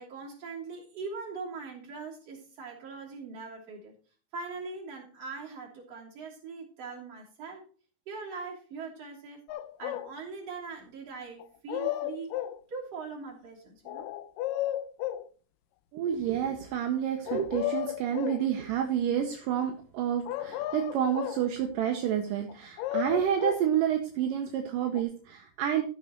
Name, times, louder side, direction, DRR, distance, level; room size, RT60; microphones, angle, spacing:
voice 1, 0.0-3.9 4.3-7.7 8.1-9.5 9.8-12.3 12.7-14.1, right 4 dB, 45° right, -2 dB, 4.0 m, -41 dB
sound 1, 9.5-10.1 11.4-12.6 13.9-15.3 17.3-18.5 20.3-21.5 22.5-23.7 25.0-25.1, left 14 dB, 80° left, 2.2 m, -33 dB
voice 2, 15.9-25.8, right 9 dB, 75° right, 4 dB, 2.5 m, -29 dB
13.5 x 6.3 x 4.3 m, 0.40 s
omnidirectional pair, 4.0 m